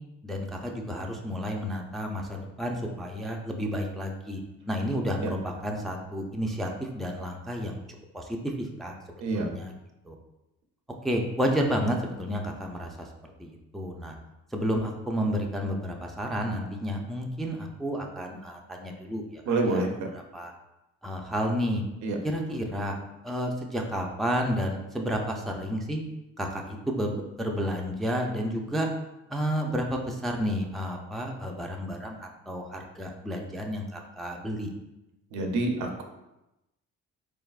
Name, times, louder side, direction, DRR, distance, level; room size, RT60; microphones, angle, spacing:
voice 1, 0.2-4.4 4.7-7.8 8.1-9.0 9.3-9.7 10.0-10.1 11.0-13.1 13.4-14.2 14.5-19.9 20.1-20.5 21.0-21.8 22.2-23.0 23.2-26.0 26.4-28.9 29.3-34.7, equal, ahead, 0 dB, 0.4 m, -31 dB
voice 2, 9.2-9.5 19.4-19.9 22.0-22.2 35.3-36.0, right 2 dB, 75° right, 3 dB, 0.7 m, -27 dB
3.8 x 3.4 x 2.4 m, 0.93 s
cardioid pair, 90°, 30 cm